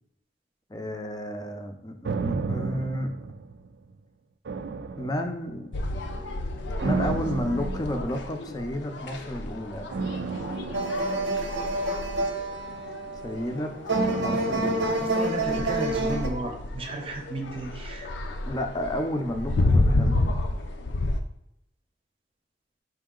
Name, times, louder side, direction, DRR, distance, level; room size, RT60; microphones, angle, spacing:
voice 1, 0.7-3.1 5.0-5.7 6.8-9.9 13.2-13.8 14.2-15.1 18.5-20.4, equal, 20° left, 5 dB, 0.5 m, -32 dB
sound 1, 2.0-4.0 4.5-5.7 6.8-8.5 9.9-12.3 13.9-16.1 16.4-16.5, right 4 dB, 65° right, 0.3 m, -33 dB
sound 2, 5.7-21.2, left 2 dB, 80° left, 0.5 m, -31 dB
sound 3, 10.7-16.3, right 2 dB, 90° right, 0.8 m, -28 dB
voice 2, 15.0-18.1, right 2 dB, 30° right, 3 dB, 0.7 m, -34 dB
4.9 x 2.8 x 3.7 m, 0.79 s
head